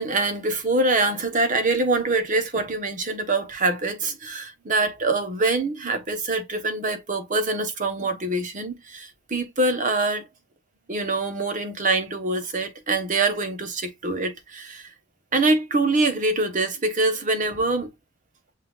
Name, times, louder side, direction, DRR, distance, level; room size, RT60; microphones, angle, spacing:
voice 1, 0.0-10.3 10.9-14.9 15.3-17.9, right 2 dB, 40° right, 1.0 m, -24 dB
7.9 x 2.7 x 2.3 m
head